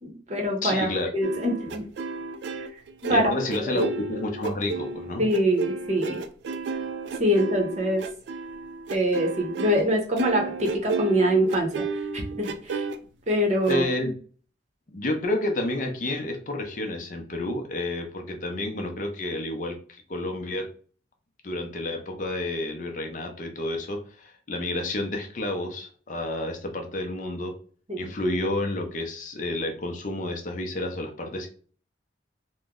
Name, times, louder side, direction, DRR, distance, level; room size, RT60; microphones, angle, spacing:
voice 1, 0.0-0.9 1.1-1.9 2.5-3.3 3.6-3.7 5.2-6.2 7.2-8.1 8.9-12.9 13.3-13.8 27.9-28.1, equal, 35° right, 2 dB, 0.8 m, -24 dB
voice 2, 0.6-1.1 3.1-5.2 13.7-14.1 14.9-20.7 21.4-27.6 28.0-31.5, left 1 dB, 40° left, 4 dB, 0.5 m, -30 dB
sound 1, 1.2-9.9 10.2-13.0 13.6-13.8, right 4 dB, 65° right, 0.3 m, -32 dB
3.0 x 2.1 x 3.5 m, 0.43 s
head